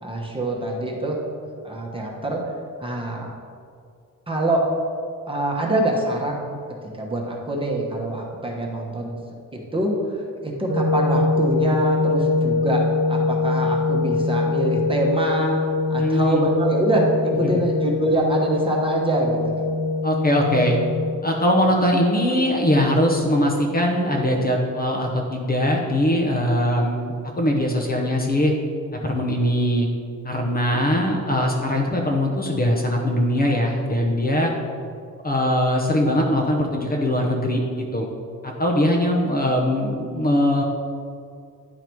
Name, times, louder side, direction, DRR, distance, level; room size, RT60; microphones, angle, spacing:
voice 1, 0.0-1.2 1.6-2.4 2.8-3.3 4.3-4.6 5.3-6.5 6.8-9.2 9.5-10.2 10.4-12.8 13.1-15.6 15.9-19.6, right 1 dB, 15° right, -1 dB, 1.1 m, -24 dB
sound 1, 10.7-21.1, left 3 dB, 80° right, 0.9 m, -23 dB
voice 2, 16.0-16.5 17.4-17.6 20.0-20.8 21.2-28.5 28.9-29.9 30.2-34.5 35.2-38.1 38.4-40.6, left 1 dB, 30° left, 0 dB, 0.8 m, -21 dB
10.5 x 3.9 x 4.6 m, 2.3 s
cardioid pair, 135°, 33 cm